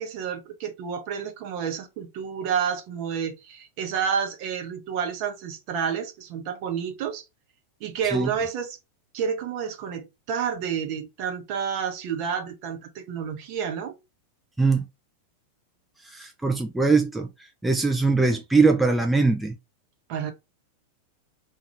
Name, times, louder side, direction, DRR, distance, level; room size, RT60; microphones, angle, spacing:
voice 1, 0.0-7.2 7.8-8.8 9.1-13.9 20.1-20.3, right 7 dB, 45° right, 0.8 m, -30 dB
voice 2, 16.0-17.3 17.6-19.5, right 3 dB, 5° right, 0.3 m, -21 dB
2.4 x 2.4 x 3.0 m
figure-of-eight pair, 90°, 0 cm